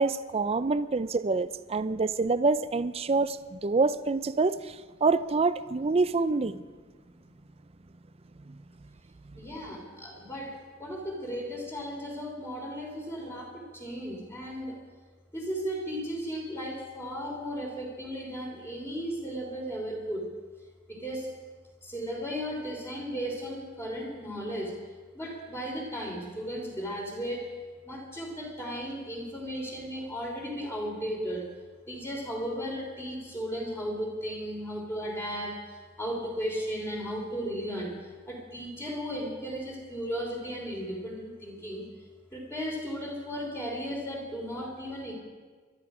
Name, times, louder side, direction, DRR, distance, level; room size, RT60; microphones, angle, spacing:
voice 1, 0.0-4.8 5.0-6.6 8.5-8.6, right 3 dB, 30° right, 14 dB, 0.5 m, -26 dB
voice 2, 9.4-14.8 15.3-20.3 20.9-21.3 21.8-24.8 25.1-27.5 27.8-31.5 31.9-38.0 38.3-41.9 42.3-45.1, equal, 15° left, -1 dB, 3.3 m, -35 dB
22.0 x 12.5 x 5.0 m, 1.4 s
head